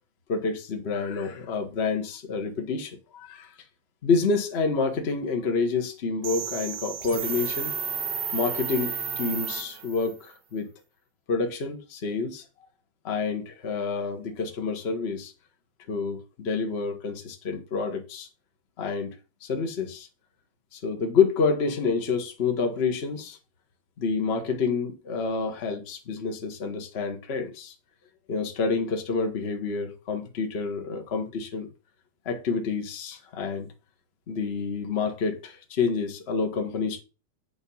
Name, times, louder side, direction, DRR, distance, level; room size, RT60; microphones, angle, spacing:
voice 1, 0.3-3.5 4.0-7.7 8.3-10.7 11.3-12.4 13.0-15.3 15.9-18.3 18.8-19.1 19.4-20.1 20.7-23.4 24.0-27.7 28.3-31.7 32.2-33.7 34.3-37.0, left 4 dB, 85° left, 0.5 m, -28 dB
sound 1, 6.2-10.1, right 6 dB, 70° right, 2.4 m, -32 dB
7.9 x 4.4 x 5.4 m
omnidirectional pair, 3.5 m